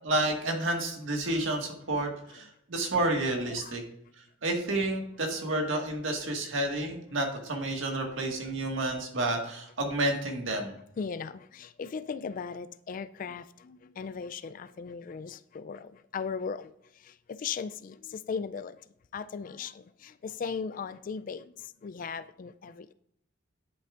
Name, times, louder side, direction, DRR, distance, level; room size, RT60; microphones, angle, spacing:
voice 1, 0.0-3.8 4.4-10.7, right 2 dB, 75° right, 1.7 m, -30 dB
voice 2, 3.5-3.8 11.0-16.7 17.4-18.7 19.1-21.4 21.8-22.9, left 5 dB, 45° left, 0.3 m, -37 dB
10.0 x 8.5 x 2.5 m
head